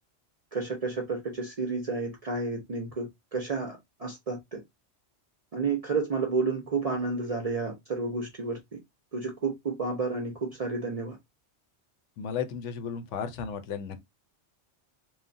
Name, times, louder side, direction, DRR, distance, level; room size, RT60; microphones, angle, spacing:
voice 1, 0.5-4.6 5.5-8.8 9.1-11.2, right 4 dB, 50° right, 0.4 m, -31 dB
voice 2, 12.2-14.0, left 7 dB, 85° left, 0.9 m, -34 dB
3.1 x 2.1 x 2.5 m
omnidirectional pair, 1.2 m